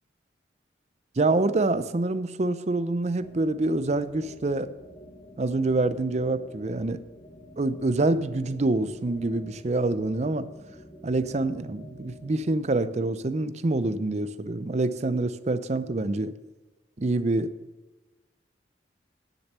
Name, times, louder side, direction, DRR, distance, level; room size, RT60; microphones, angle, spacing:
voice 1, 1.2-4.7 5.4-7.0 7.6-10.5 11.0-16.3 17.0-17.5, right 2 dB, 35° right, 13 dB, 0.5 m, -26 dB
sound 1, 3.2-13.1, equal, 30° left, 1.3 m, -49 dB
10.0 x 6.8 x 6.8 m, 1.2 s
head